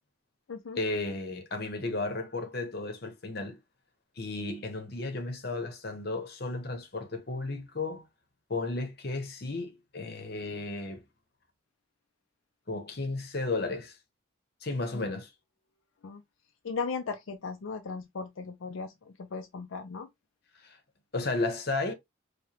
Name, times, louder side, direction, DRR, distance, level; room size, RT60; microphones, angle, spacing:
voice 1, 0.8-3.6 4.2-8.0 8.5-11.0 12.7-13.9 14.6-15.3 20.6-20.8 21.1-21.9, left 2 dB, 50° left, 0.9 m, -33 dB
voice 2, 16.6-20.1, left 4 dB, 75° left, 0.5 m, -37 dB
4.8 x 2.3 x 2.8 m
head